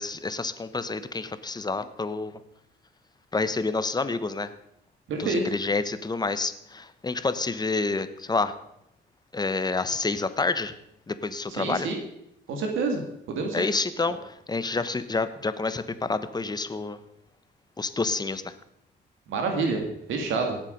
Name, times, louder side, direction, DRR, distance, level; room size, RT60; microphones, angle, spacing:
voice 1, 0.0-2.4 3.3-4.5 5.2-8.5 9.3-10.7 11.1-11.9 13.5-17.0 17.8-18.5, left 3 dB, 20° left, 12 dB, 1.0 m, -28 dB
voice 2, 5.1-5.4 11.5-12.0 12.5-13.0 13.3-13.7 19.3-20.6, right 4 dB, 80° right, 3 dB, 2.3 m, -28 dB
17.5 x 7.4 x 5.3 m, 0.77 s
cardioid pair, 90°, 20 cm